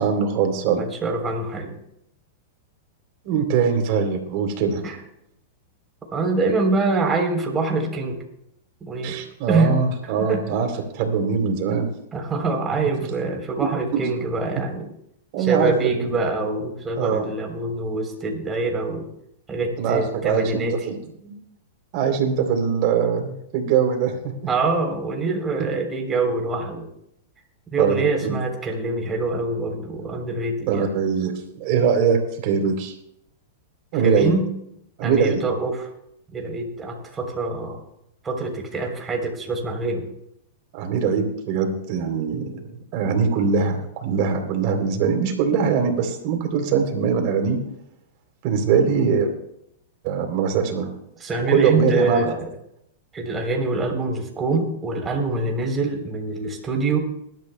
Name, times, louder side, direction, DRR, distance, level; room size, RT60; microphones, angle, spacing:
voice 1, 0.0-0.8 3.2-4.8 9.0-11.9 13.6-14.0 15.3-15.7 16.0-16.1 17.0-17.2 19.8-21.0 21.2-21.3 21.9-24.3 27.8-28.4 30.7-32.9 33.9-34.3 35.0-35.4 40.7-47.6 48.4-49.3 50.0-50.9 51.5-52.4, right 6 dB, 50° right, 4 dB, 3.2 m, -22 dB
voice 2, 0.8-1.8 4.8-5.0 6.1-8.2 8.8-9.2 9.5-9.8 10.0-10.5 12.1-14.9 15.4-19.1 19.5-20.7 24.5-26.9 27.7-31.0 34.0-34.5 35.0-35.9 36.3-37.8 38.2-40.0 51.2-52.5 53.1-57.0, right 3 dB, 20° right, 2 dB, 3.5 m, -25 dB
21.5 x 12.5 x 2.2 m, 0.76 s
hypercardioid pair, 110°, 0 cm